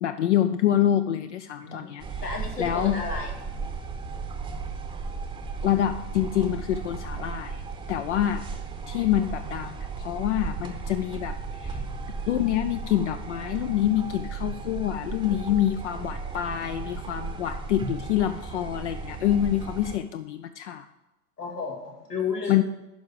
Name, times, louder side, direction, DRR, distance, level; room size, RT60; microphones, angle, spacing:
voice 1, 0.0-2.1 2.6-3.0 5.6-7.6 7.9-8.5 8.9-11.8 12.3-20.9 22.5-22.6, left 11 dB, 50° left, 9 dB, 0.6 m, -26 dB
voice 2, 1.6-1.9 2.2-3.3 21.4-22.6, left 5 dB, 90° left, 0 dB, 2.4 m, -32 dB
sound 1, 2.0-20.0, right 4 dB, 10° right, 0.9 m, -35 dB
11.5 x 4.7 x 6.9 m, 0.97 s
figure-of-eight pair, 110°, 46 cm